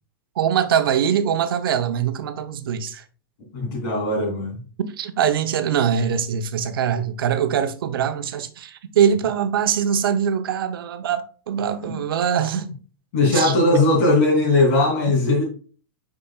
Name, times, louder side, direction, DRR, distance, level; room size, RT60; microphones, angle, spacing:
voice 1, 0.4-3.0 5.0-12.7 13.3-13.9 15.1-15.2, right 8 dB, 85° right, 0.9 m, -22 dB
voice 2, 3.5-4.6 11.8-12.0 12.5-12.6 13.1-15.4, left 2 dB, 40° left, 3.0 m, -19 dB
8.7 x 5.1 x 2.4 m
supercardioid pair, 170°, 12 cm